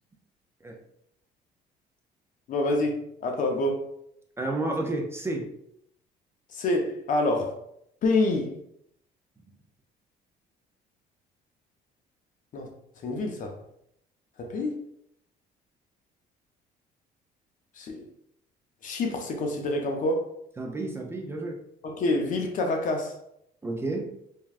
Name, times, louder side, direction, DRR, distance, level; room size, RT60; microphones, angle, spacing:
voice 1, 2.5-3.8 6.5-7.6 8.0-8.6 12.5-12.7 13.0-13.6 14.4-14.8 17.8-18.0 18.8-20.3 21.8-23.1, left 2 dB, 50° left, 0.6 m, -27 dB
voice 2, 4.4-5.5 20.6-21.6 23.6-24.1, right 2 dB, 15° right, 0.4 m, -31 dB
3.3 x 2.2 x 2.4 m
cardioid pair, 110°, 17 cm